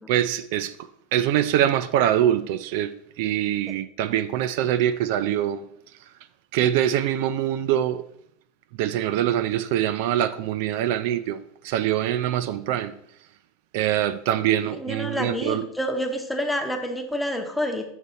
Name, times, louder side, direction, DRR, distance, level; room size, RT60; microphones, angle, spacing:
voice 1, 0.1-5.7 6.5-8.0 8.8-13.0 13.7-15.7, right 11 dB, 60° right, 0.3 m, -24 dB
voice 2, 14.7-17.8, equal, 5° left, 0.7 m, -28 dB
6.4 x 4.0 x 5.5 m
supercardioid pair, 155°, 0 cm